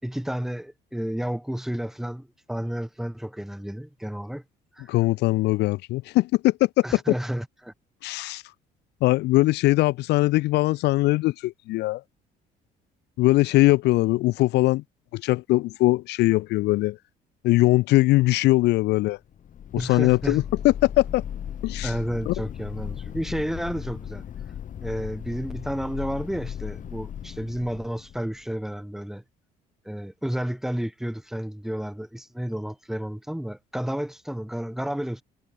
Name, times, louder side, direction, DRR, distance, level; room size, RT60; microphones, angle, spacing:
voice 1, 0.0-4.4 4.8-5.0 6.8-7.7 19.8-20.4 21.8-24.2 24.8-29.2 29.8-35.2, equal, ahead, 4.5 m, -31 dB
voice 2, 4.9-6.7 8.0-8.4 9.0-12.0 13.2-14.8 15.1-17.0 17.4-19.2 19.7-21.2 21.6-21.9 22.3-22.4, left 19 dB, 80° left, 1.0 m, -21 dB
sound 1, 19.3-28.6, left 9 dB, 50° left, 4.8 m, -36 dB
cardioid pair, 110°, 17 cm